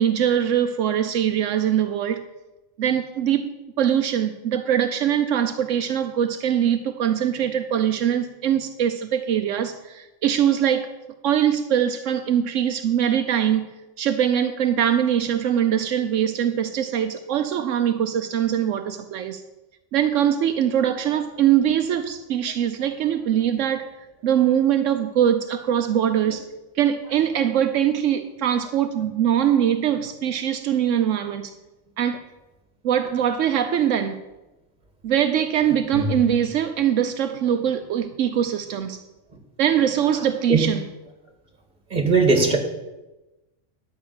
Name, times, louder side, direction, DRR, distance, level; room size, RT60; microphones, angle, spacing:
voice 1, 0.0-2.2 2.8-3.5 3.8-10.9 11.2-19.4 19.9-24.0 24.2-26.4 26.7-31.5 32.0-32.2 32.8-34.2 35.0-39.0 39.6-40.9, right 9 dB, 80° right, 7 dB, 1.0 m, -22 dB
voice 2, 35.9-36.3 40.5-40.6 41.9-42.6, right 3 dB, 35° right, 4 dB, 2.2 m, -19 dB
12.0 x 5.7 x 8.6 m, 1.0 s
omnidirectional pair, 1.3 m